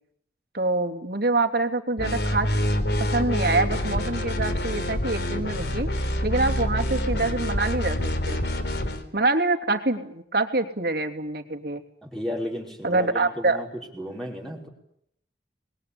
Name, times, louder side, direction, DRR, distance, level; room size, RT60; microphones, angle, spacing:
voice 1, 0.5-2.5 3.0-5.9 6.2-8.0 8.3-8.5 9.1-11.8 12.8-13.6, right 2 dB, 60° right, 4 dB, 3.2 m, -25 dB
sound 1, 2.0-9.0, left 1 dB, 65° left, 3.6 m, -26 dB
voice 2, 12.0-13.7 13.9-14.7, left 1 dB, ahead, -1 dB, 5.3 m, -33 dB
27.5 x 21.5 x 8.8 m, 0.73 s
head